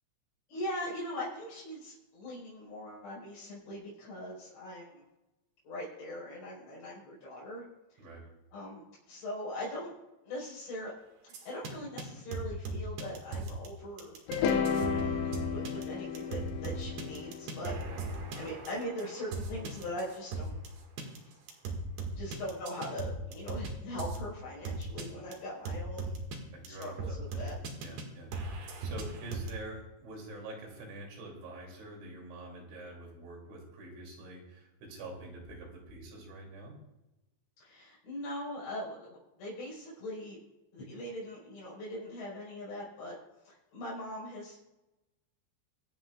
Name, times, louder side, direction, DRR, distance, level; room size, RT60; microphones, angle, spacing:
voice 1, 0.5-5.0 5.6-7.6 7.9-8.1 8.5-9.9 10.2-10.9 11.2-14.2 14.7-20.6 22.1-26.2 26.7-27.6 37.6-40.4 40.7-43.2 43.4-44.6, left 1 dB, 75° left, -6 dB, 7.0 m, -41 dB
sound 1, 11.3-11.7 12.0-12.1 12.3-13.7 14.0-20.7 21.0-21.2 21.5-23.7 24.0-24.2 24.6-25.0 25.3-25.4 25.6-26.4 26.6-28.0 28.3-29.5, right 3 dB, 65° right, 3.6 m, -37 dB
sound 2, 14.3-18.5, left 7 dB, 90° left, 3.5 m, -33 dB
voice 2, 26.5-27.5 27.8-36.8, right 2 dB, 85° right, -1 dB, 5.3 m, -46 dB
25.5 x 9.0 x 2.4 m, 0.97 s
omnidirectional pair, 5.2 m